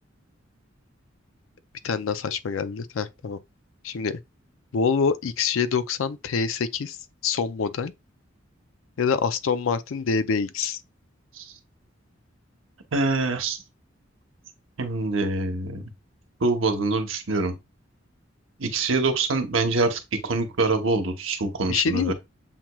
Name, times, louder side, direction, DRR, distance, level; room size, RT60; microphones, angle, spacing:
voice 1, 1.8-3.4 3.8-4.2 4.7-7.0 7.2-7.9 9.0-10.8 21.7-22.1, left 5 dB, 85° left, 0.4 m, -25 dB
voice 2, 12.9-13.6 14.8-15.8 16.4-17.5 18.6-22.1, right 3 dB, 85° right, 1.0 m, -25 dB
7.3 x 3.0 x 2.3 m
head